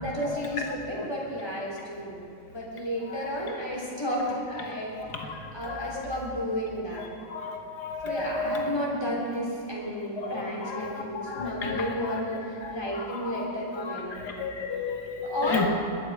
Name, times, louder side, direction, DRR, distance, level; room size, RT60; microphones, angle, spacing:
voice 1, 0.0-4.9 5.2-7.0 8.0-14.5 15.2-15.7, equal, 10° left, -5 dB, 3.4 m, -32 dB
voice 2, 7.3-8.7 10.2-11.9 12.6-12.8 13.3-13.4 13.9-15.7, left 4 dB, 60° left, 3 dB, 1.7 m, -33 dB
20.5 x 10.5 x 4.8 m, 2.6 s
omnidirectional pair, 2.1 m